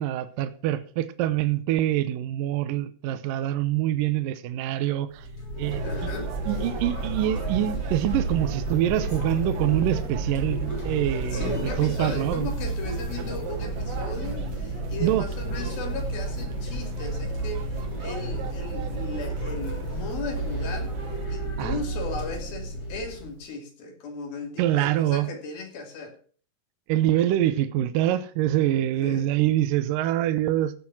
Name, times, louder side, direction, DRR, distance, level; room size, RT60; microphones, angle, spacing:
voice 1, 0.0-5.3 5.6-6.1 6.5-12.5 15.0-15.3 21.6-21.8 24.6-25.3 26.9-30.7, right 13 dB, 75° right, 2.2 m, -25 dB
sound 1, 5.1-23.4, right 1 dB, 25° left, 3.6 m, -31 dB
sound 2, 5.6-21.3, right 7 dB, 50° right, 2.2 m, -39 dB
voice 2, 5.8-6.3 11.2-20.9 21.3-26.2 29.0-29.3, left 3 dB, 70° left, 4.5 m, -36 dB
15.5 x 7.3 x 6.0 m
omnidirectional pair, 4.5 m